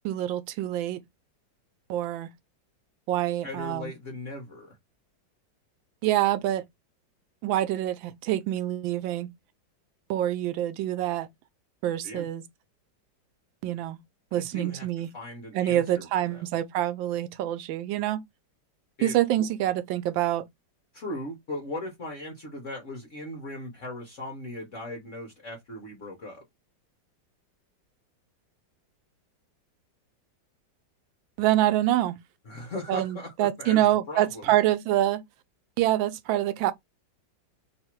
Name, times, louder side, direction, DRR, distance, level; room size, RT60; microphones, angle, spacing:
voice 1, 0.0-1.0 1.9-2.3 3.1-4.0 6.0-6.6 7.4-9.3 10.1-11.3 11.8-12.5 13.6-14.0 14.3-15.1 15.5-18.2 19.0-20.4 31.4-32.2 32.9-35.2 35.8-36.7, right 13 dB, 85° right, 1.3 m, -26 dB
voice 2, 3.4-4.8 12.0-12.3 14.3-14.9 15.1-16.4 19.0-19.5 20.9-26.4 32.4-34.5, left 1 dB, 45° left, 1.3 m, -38 dB
3.3 x 2.7 x 4.4 m
omnidirectional pair, 2.0 m